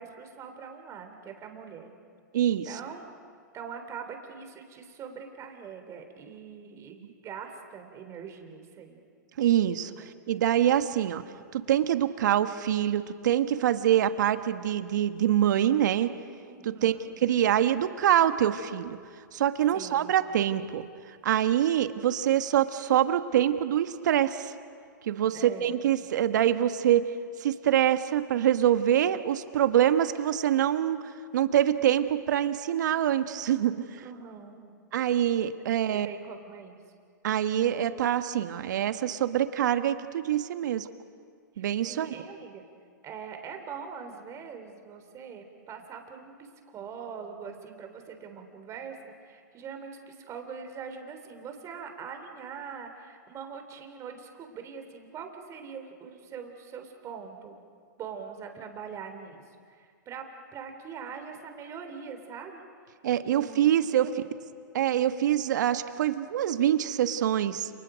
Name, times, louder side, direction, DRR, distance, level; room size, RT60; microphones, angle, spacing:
voice 1, 0.0-1.9 2.7-3.1 3.5-9.0 16.4-17.1 19.7-20.1 25.2-25.7 34.0-34.6 35.9-36.8 41.6-42.6 43.0-57.6 58.0-59.4 59.7-60.3 60.5-62.6 63.2-64.3, right 6 dB, 30° right, 6 dB, 3.6 m, -42 dB
voice 2, 2.3-2.8 9.4-9.9 10.3-11.2 11.5-16.1 16.6-16.9 17.2-19.0 19.3-20.8 21.2-24.5 25.0-27.0 27.4-31.0 31.3-33.8 34.9-36.1 37.2-40.9 41.6-42.1 63.0-64.1 64.7-67.7, right 11 dB, 65° right, 10 dB, 1.3 m, -25 dB
30.0 x 28.5 x 5.2 m, 2.1 s
hypercardioid pair, 115°, 10 cm